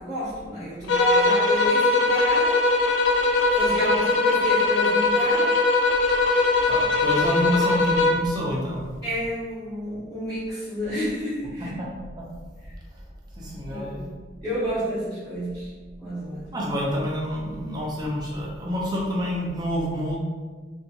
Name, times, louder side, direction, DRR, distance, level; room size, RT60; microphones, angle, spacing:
voice 1, 0.0-2.6 3.5-5.5 9.0-11.7 13.7-15.7 16.0-16.5, equal, 15° left, -15 dB, 0.8 m, -30 dB
sound 1, 0.9-8.3, left 3 dB, 90° left, 0.3 m, -21 dB
voice 2, 6.7-8.8 11.8-11.9 12.2-12.3 13.4-13.9 16.5-20.2, equal, 20° right, -4 dB, 0.6 m, -27 dB
2.7 x 2.4 x 2.6 m, 1.4 s
head